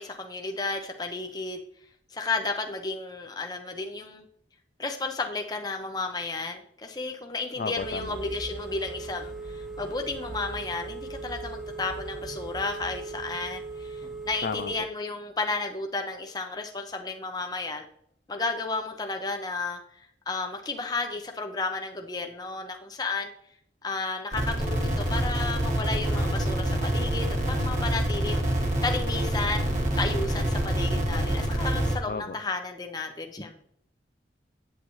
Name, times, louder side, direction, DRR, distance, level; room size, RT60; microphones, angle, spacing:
voice 1, 0.0-1.6 2.1-4.2 4.8-17.8 18.3-23.3 23.8-28.5 28.8-33.6, left 3 dB, 20° left, 4 dB, 0.7 m, -33 dB
voice 2, 7.6-8.2 14.4-14.7 32.1-32.4, left 4 dB, 50° left, 9 dB, 0.4 m, -33 dB
Telephone, 7.8-14.8, right 3 dB, 5° right, 1.0 m, -38 dB
sound 1, 24.3-31.9, right 1 dB, 45° right, 1.5 m, -26 dB
8.7 x 8.3 x 3.1 m, 0.69 s
head